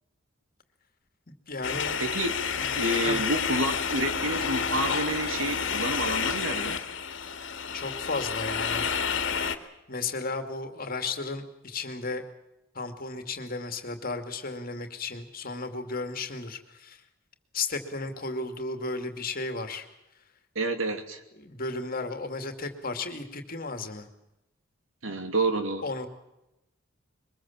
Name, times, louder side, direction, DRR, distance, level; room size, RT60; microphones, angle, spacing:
voice 1, 1.3-2.0 2.6-2.7 3.0-3.2 7.7-8.9 9.9-12.2 12.7-17.0 17.5-19.8 21.4-24.1 25.8-26.1, left 3 dB, 45° left, 7 dB, 2.5 m, -34 dB
sound 1, 1.6-9.5, left 6 dB, 65° left, 2.0 m, -30 dB
voice 2, 2.0-2.4 2.8-6.8 20.5-21.2 25.0-25.8, right 2 dB, 85° right, 7 dB, 2.7 m, -29 dB
23.0 x 21.0 x 7.3 m, 0.92 s
head